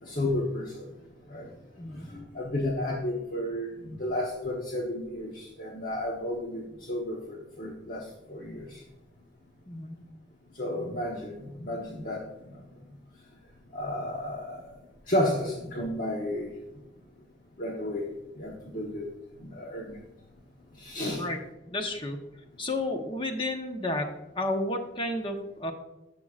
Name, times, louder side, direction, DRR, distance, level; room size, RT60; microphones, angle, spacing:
voice 1, 0.0-0.9 1.3-1.5 1.9-8.8 10.5-12.6 13.7-14.8 15.1-16.5 17.6-18.0 18.3-19.1 19.4-20.0 20.7-21.3, left 1 dB, 50° left, -1 dB, 1.1 m, -32 dB
voice 2, 1.8-2.1 9.7-10.0 21.2-21.4 21.7-22.2 22.6-25.7, left 1 dB, 30° left, 4 dB, 1.1 m, -32 dB
11.5 x 7.6 x 2.5 m, 0.99 s
head